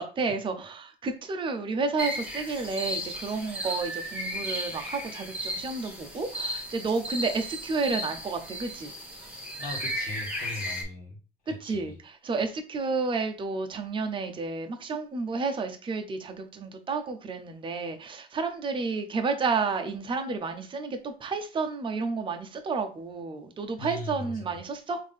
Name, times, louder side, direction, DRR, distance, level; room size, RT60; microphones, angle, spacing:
voice 1, 0.0-8.9 10.4-10.5 11.6-25.0, right 4 dB, 30° right, 5 dB, 0.7 m, -31 dB
sound 1, 2.0-10.8, equal, 10° right, 1.6 m, -35 dB
voice 2, 9.6-11.2 11.4-11.9 23.8-24.6, left 1 dB, 60° left, -4 dB, 1.2 m, -39 dB
3.5 x 2.7 x 3.5 m, 0.36 s
cardioid pair, 110°, 17 cm